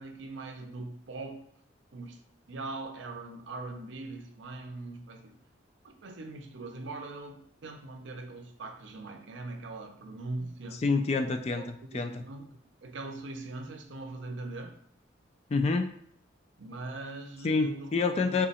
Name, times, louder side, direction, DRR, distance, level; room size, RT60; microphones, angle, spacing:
voice 1, 0.0-1.4 1.9-2.2 2.5-5.4 5.8-10.8 11.5-11.7 11.9-12.5 12.8-14.8 16.6-17.9 18.2-18.4, right 2 dB, 70° right, 0.5 m, -41 dB
voice 2, 10.8-12.2 15.5-15.9 17.4-18.5, left 4 dB, 35° left, 0.3 m, -27 dB
3.6 x 2.9 x 4.2 m
head